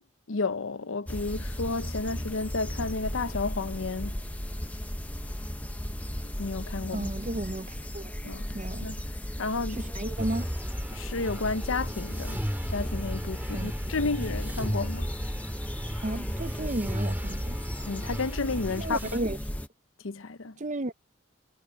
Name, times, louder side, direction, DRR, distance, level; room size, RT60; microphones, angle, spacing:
voice 1, 0.3-4.2 6.4-7.1 8.2-8.5 8.8-9.0 9.4-9.8 10.9-12.4 12.7-15.1 17.9-19.0 20.0-20.6, left 3 dB, 85° left, 0.8 m, -31 dB
sound 1, 1.1-19.7, equal, 5° left, 0.8 m, -35 dB
sound 2, 2.3-9.3, left 2 dB, 45° left, 7.8 m, -62 dB
voice 2, 6.9-8.9 9.8-10.5 13.5-13.7 16.0-17.6 18.8-19.4 20.6-20.9, right 1 dB, 35° right, 0.7 m, -33 dB
sound 3, 10.2-19.2, equal, 10° right, 2.1 m, -35 dB
head